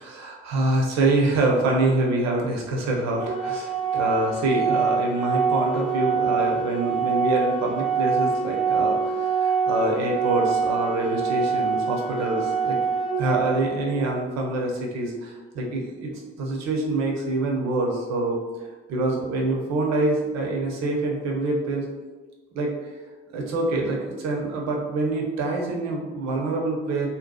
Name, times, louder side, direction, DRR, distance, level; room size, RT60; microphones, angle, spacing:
voice 1, 0.0-12.8 13.2-18.4 18.9-21.8 22.5-22.9 23.3-27.1, right 2 dB, 50° right, 0 dB, 0.6 m, -25 dB
Organ, 3.2-14.2, right 6 dB, ahead, 0.4 m, -25 dB
2.6 x 2.2 x 2.2 m, 1.3 s
figure-of-eight pair, 45°, 34 cm